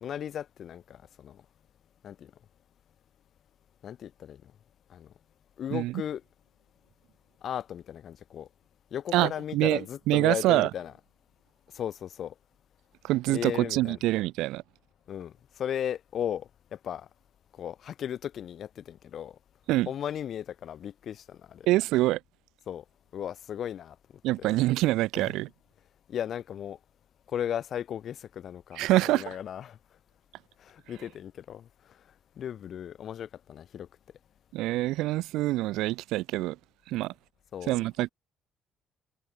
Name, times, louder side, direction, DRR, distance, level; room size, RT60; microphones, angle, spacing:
voice 1, 0.0-1.4 2.0-2.3 3.8-4.4 4.9-5.1 5.6-6.2 7.4-8.5 8.9-10.9 11.7-12.3 13.3-14.0 15.1-17.1 17.6-19.4 19.9-21.7 22.7-22.8 23.1-24.0 24.4-24.6 25.1-25.3 26.1-26.8 27.3-29.8 30.6-31.7 32.4-33.9 37.5-37.8, left 9 dB, 55° left, 1.1 m, -36 dB
voice 2, 9.1-9.8 10.1-10.7 13.0-14.6 19.7-19.9 21.7-22.2 24.2-25.5 28.8-29.2 34.5-36.6 36.9-37.1 37.7-38.1, right 17 dB, 70° right, 0.3 m, -25 dB
figure-of-eight pair, 45°, 0 cm